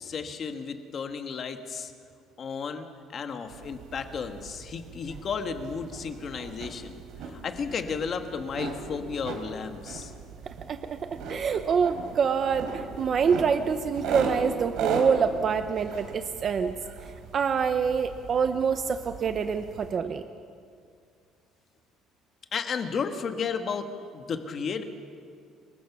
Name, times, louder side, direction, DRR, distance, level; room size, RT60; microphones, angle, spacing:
voice 1, 0.0-1.9 2.4-10.1 22.5-23.9 24.1-24.8, left 5 dB, 30° left, 6 dB, 1.5 m, -33 dB
sound 1, 3.5-20.0, right 4 dB, 60° right, 3.6 m, -38 dB
voice 2, 10.5-16.8 17.3-20.2, right 6 dB, 30° right, 8 dB, 0.7 m, -26 dB
27.5 x 23.0 x 6.1 m, 2.2 s
cardioid pair, 180°, 0 cm